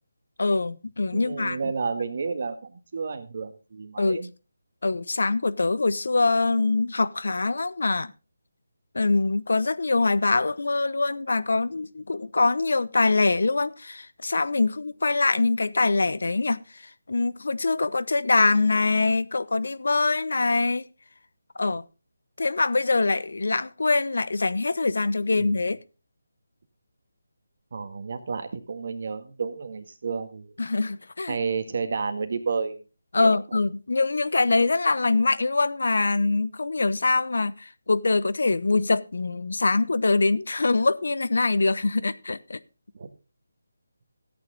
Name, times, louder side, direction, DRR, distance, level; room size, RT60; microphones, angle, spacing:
voice 1, 0.4-1.7 4.0-4.2 4.8-8.1 8.9-16.6 17.1-20.9 21.6-21.8 22.4-25.8 30.6-31.4 33.1-42.6, left 3 dB, 70° left, 0.8 m, -24 dB
voice 2, 1.1-4.3 25.3-25.7 27.7-30.5 31.3-32.8 33.2-33.4 42.9-43.1, right 5 dB, 50° right, 1.7 m, -31 dB
14.0 x 9.0 x 3.9 m
figure-of-eight pair, 165°, 0 cm